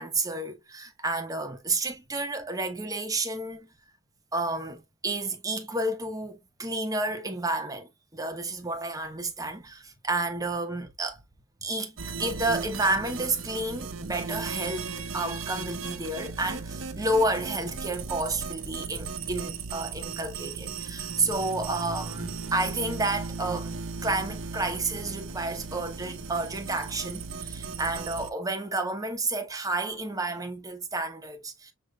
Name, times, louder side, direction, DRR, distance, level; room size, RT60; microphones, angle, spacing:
voice 1, 0.0-3.7 4.3-11.2 11.6-31.7, right 2 dB, 20° right, 1.0 m, -31 dB
sound 1, 12.0-28.3, right 4 dB, 85° right, 0.9 m, -37 dB
6.6 x 3.2 x 2.3 m
head